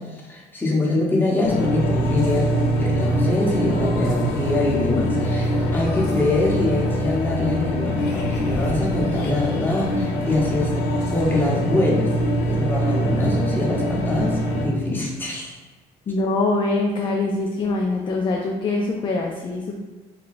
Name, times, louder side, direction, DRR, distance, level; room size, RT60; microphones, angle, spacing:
voice 1, 0.1-10.8 11.1-12.1 12.5-15.5, left 2 dB, 10° left, -4 dB, 0.9 m, -24 dB
sound 1, 1.4-14.7, equal, 75° left, 0.7 m, -23 dB
voice 2, 16.1-19.8, left 2 dB, 30° left, 0 dB, 0.3 m, -23 dB
3.1 x 2.2 x 4.1 m, 1.3 s
cardioid pair, 110°, 17 cm